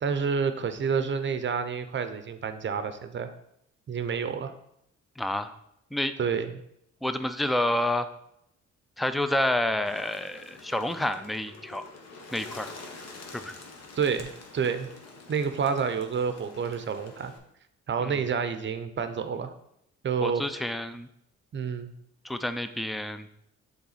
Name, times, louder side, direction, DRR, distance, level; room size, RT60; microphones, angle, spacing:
voice 1, 0.0-3.3 3.9-4.5 6.2-6.6 14.0-14.9 15.3-17.3 17.9-19.5 20.0-20.6 21.5-21.9, right 6 dB, 40° right, 10 dB, 0.7 m, -29 dB
voice 2, 5.2-5.6 5.9-6.1 7.0-8.1 9.0-11.8 12.3-12.7 13.3-13.6 18.0-18.2 20.2-21.1 22.2-23.3, left 1 dB, ahead, 10 dB, 0.4 m, -29 dB
Bird, 9.8-17.4, left 3 dB, 60° left, 1.2 m, -47 dB
7.0 x 3.6 x 4.1 m, 0.76 s
cardioid pair, 90°, 30 cm